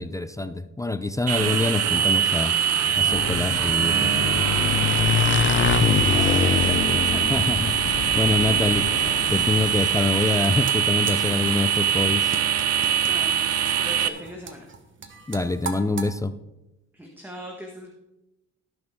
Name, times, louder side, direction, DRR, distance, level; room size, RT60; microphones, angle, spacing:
voice 1, 0.0-2.5 3.0-4.3 7.3-8.9 9.3-12.3 15.3-16.3, left 3 dB, 10° left, 12 dB, 0.5 m, -25 dB
sound 1, 1.3-14.1, right 9 dB, 55° right, 0.8 m, -23 dB
Motorcycle / Engine, 2.7-10.1, left 7 dB, 40° left, 0.8 m, -25 dB
voice 2, 5.9-7.2 8.0-8.5 13.0-14.6 16.9-17.9, left 1 dB, 5° right, 1 dB, 1.5 m, -39 dB
sound 2, 10.1-16.1, right 5 dB, 40° right, 1.3 m, -38 dB
17.0 x 6.2 x 3.7 m, 0.96 s
cardioid pair, 90°, 30 cm